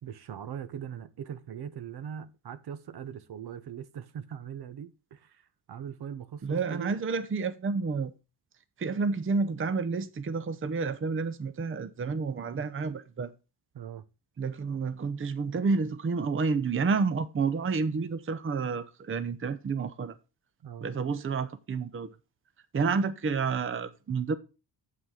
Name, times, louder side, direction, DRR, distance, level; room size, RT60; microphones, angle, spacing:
voice 1, 0.0-5.4 5.7-7.0 13.7-14.0 20.6-20.9, right 8 dB, 55° right, 0.9 m, -40 dB
voice 2, 6.4-8.1 8.8-13.3 14.4-20.1 20.8-22.1 22.7-24.4, right 4 dB, 30° right, 0.7 m, -30 dB
7.6 x 5.9 x 4.8 m
cardioid pair, 85°, 45 cm